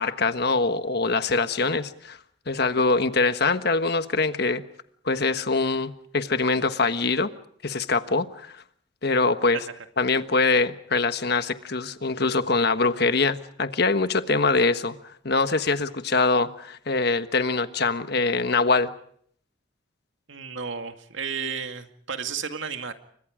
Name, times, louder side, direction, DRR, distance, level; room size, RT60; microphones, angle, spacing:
voice 1, 0.0-2.2 2.5-4.6 5.0-7.3 7.6-8.6 9.0-9.6 10.0-15.0 15.2-18.9, left 3 dB, 55° left, 10 dB, 1.4 m, -23 dB
voice 2, 20.3-22.9, right 6 dB, 75° right, 7 dB, 2.1 m, -32 dB
30.0 x 24.5 x 5.1 m, 0.63 s
head